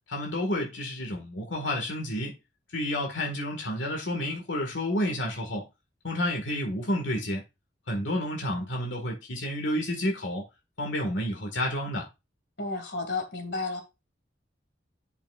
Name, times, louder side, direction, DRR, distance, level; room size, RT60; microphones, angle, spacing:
voice 1, 0.1-2.4 2.7-5.6 6.0-7.4 7.9-10.4 10.8-12.1, left 1 dB, 80° left, 1.8 m, -30 dB
voice 2, 12.6-13.8, left 3 dB, 65° left, 2.2 m, -32 dB
10.0 x 5.9 x 2.4 m
head